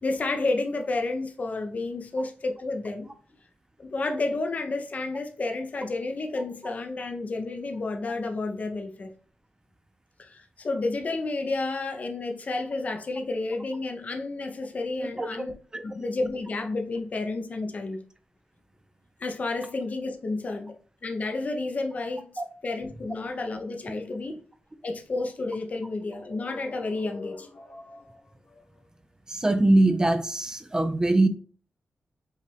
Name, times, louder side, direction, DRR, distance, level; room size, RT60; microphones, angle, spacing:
voice 1, 0.0-3.1 3.8-9.1 10.2-15.5 15.8-18.0 19.2-20.7 21.0-24.4 24.8-28.2 28.5-28.6, left 3 dB, 45° left, 0.6 m, -31 dB
voice 2, 29.3-31.3, right 2 dB, 20° right, 0.5 m, -22 dB
5.4 x 2.4 x 3.4 m
cardioid pair, 80°, 4 cm